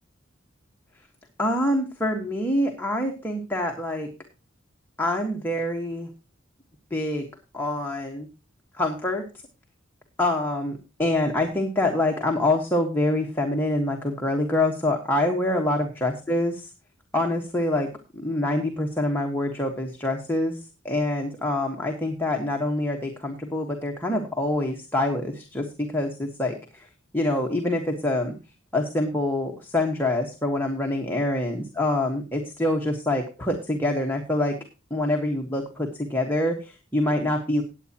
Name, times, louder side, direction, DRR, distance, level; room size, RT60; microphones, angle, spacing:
voice 1, 1.4-4.1 5.0-6.1 6.9-7.2 7.5-8.3 8.8-9.2 10.2-16.7 17.1-17.9 18.1-20.6 20.8-26.9 27.1-28.3 28.7-34.5 34.9-37.6, left 1 dB, 10° left, 1 dB, 1.4 m, -25 dB
18.5 x 8.5 x 2.9 m, 0.30 s
head